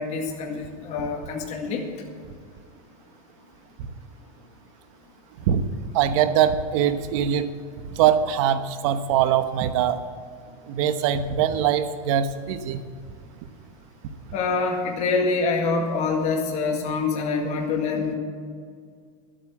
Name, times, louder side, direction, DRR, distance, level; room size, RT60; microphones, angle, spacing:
voice 1, 0.0-1.8 14.3-18.1, left 4 dB, 35° left, 0 dB, 2.0 m, -25 dB
voice 2, 5.9-7.5 8.0-10.0 10.7-12.8, right 9 dB, 60° right, 10 dB, 1.1 m, -22 dB
12.0 x 8.9 x 7.3 m, 2.1 s
supercardioid pair, 135°, 19 cm